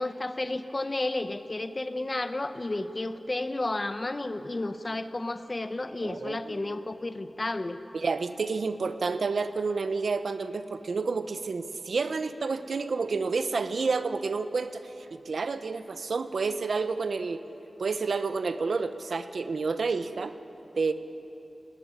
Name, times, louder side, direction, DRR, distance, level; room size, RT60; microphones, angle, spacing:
voice 1, 0.0-7.8, left 2 dB, 35° left, 10 dB, 1.0 m, -32 dB
voice 2, 6.0-6.8 7.9-17.4 17.8-20.3 20.7-20.9, right 4 dB, 80° right, 10 dB, 0.9 m, -30 dB
20.0 x 18.5 x 9.8 m, 3.0 s
wide cardioid pair, 80°, 0 cm